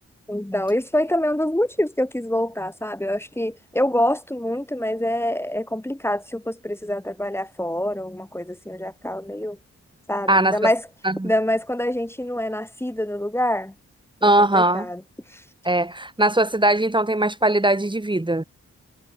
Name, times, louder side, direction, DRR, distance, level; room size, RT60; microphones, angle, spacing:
voice 1, 0.3-9.6 10.1-10.8 11.2-13.7 14.2-15.0 15.3-15.4, left 1 dB, 10° left, 3.5 m, -25 dB
voice 2, 14.2-14.9 15.6-18.4, right 1 dB, 15° right, 3.0 m, -20 dB
cardioid pair, 80°, 30 cm